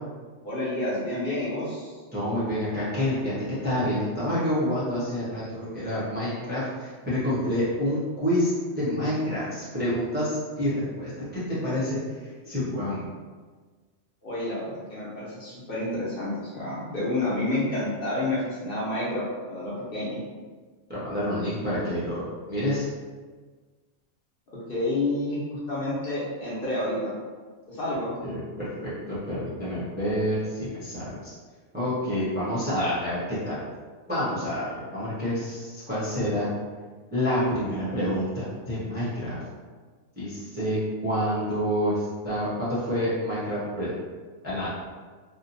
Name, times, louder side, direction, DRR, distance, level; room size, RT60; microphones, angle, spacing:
voice 1, 0.4-1.9 14.2-20.2 24.7-27.1 27.7-28.2, left 1 dB, 50° left, -8 dB, 0.9 m, -29 dB
voice 2, 2.1-3.3 3.6-13.1 20.9-22.8 28.2-31.3 31.7-33.6 34.1-36.5 37.1-39.4 40.2-43.9 44.4-44.7, equal, 10° right, -10 dB, 0.5 m, -28 dB
2.7 x 2.1 x 2.6 m, 1.4 s
omnidirectional pair, 1.3 m